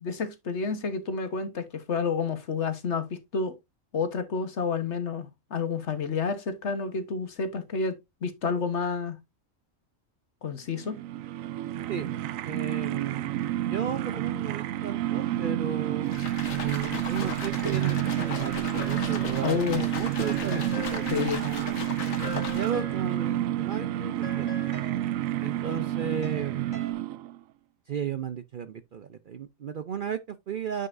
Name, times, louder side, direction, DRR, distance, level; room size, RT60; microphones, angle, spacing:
voice 1, 0.0-3.5 3.9-7.9 8.2-9.2 10.4-11.0 19.4-19.9 21.1-21.4, left 5 dB, 60° left, 1.5 m, -29 dB
sound 1, 10.7-27.4, right 13 dB, 80° right, 1.0 m, -30 dB
voice 2, 12.4-16.2 16.5-21.9 22.2-24.6 25.4-26.8 27.9-30.9, right 8 dB, 55° right, 0.6 m, -35 dB
sound 2, 16.0-22.9, left 4 dB, 75° left, 1.9 m, -37 dB
sound 3, 18.8-19.4 19.7-23.4 23.7-26.9, left 4 dB, 40° left, 2.2 m, -44 dB
9.4 x 5.5 x 2.6 m
omnidirectional pair, 1.4 m